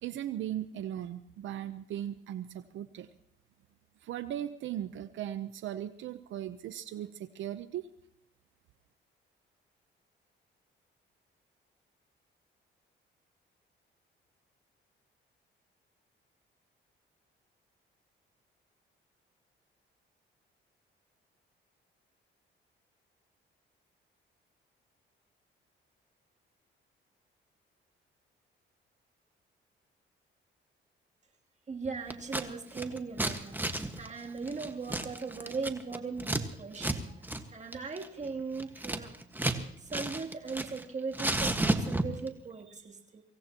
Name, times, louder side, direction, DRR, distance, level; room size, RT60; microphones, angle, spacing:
voice 1, 0.0-3.1 4.0-7.9, right 11 dB, 75° right, 11 dB, 0.8 m, -38 dB
voice 2, 31.7-39.1 39.8-43.2, right 4 dB, 35° right, 1 dB, 3.1 m, -39 dB
Scissors, 32.1-32.5 32.7-36.4 36.7-37.0 37.2-37.4 37.7-39.6 39.9-40.8 41.1-42.3, right 1 dB, 10° right, 1.6 m, -32 dB
24.5 x 17.0 x 3.0 m, 0.77 s
cardioid pair, 90°, 20 cm